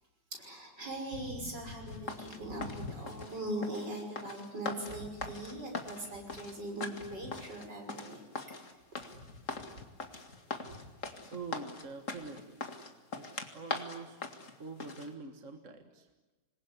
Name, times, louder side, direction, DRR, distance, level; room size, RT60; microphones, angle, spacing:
voice 1, 0.4-8.2, right 1 dB, 75° right, 2 dB, 6.6 m, -40 dB
sound 1, 1.9-15.1, left 3 dB, 45° left, 2.4 m, -42 dB
voice 2, 11.3-12.7 13.1-14.2 14.6-16.1, right 3 dB, 45° right, 6 dB, 2.0 m, -45 dB
26.5 x 21.5 x 9.8 m, 1.2 s
omnidirectional pair, 1.9 m